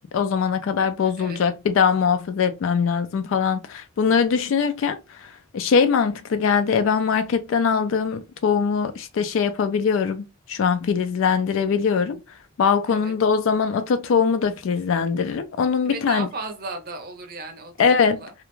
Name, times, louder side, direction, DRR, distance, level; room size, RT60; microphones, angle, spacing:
voice 1, 0.1-12.2 12.6-16.3 17.8-18.2, left 6 dB, 65° left, 0.3 m, -22 dB
voice 2, 1.0-1.4 12.9-13.2 15.8-18.3, right 3 dB, 45° right, 0.6 m, -36 dB
2.3 x 2.1 x 2.9 m
head